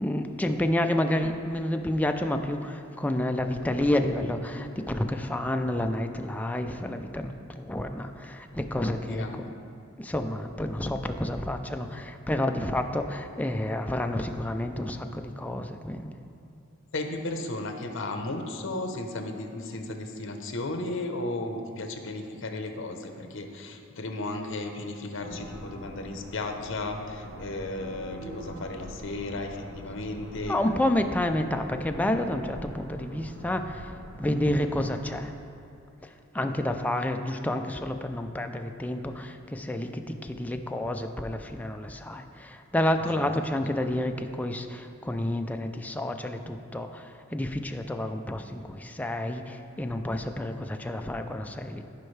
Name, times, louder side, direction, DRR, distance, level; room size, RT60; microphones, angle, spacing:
voice 1, 0.0-9.5 10.0-16.1 30.5-35.3 36.0-51.8, left 1 dB, 10° left, 6 dB, 0.4 m, -29 dB
voice 2, 9.1-9.4 16.9-30.6 43.0-43.3, left 2 dB, 65° left, 5 dB, 0.8 m, -34 dB
sound 1, 25.2-35.3, equal, 80° right, 1.0 m, -44 dB
14.5 x 5.4 x 3.3 m, 2.6 s
head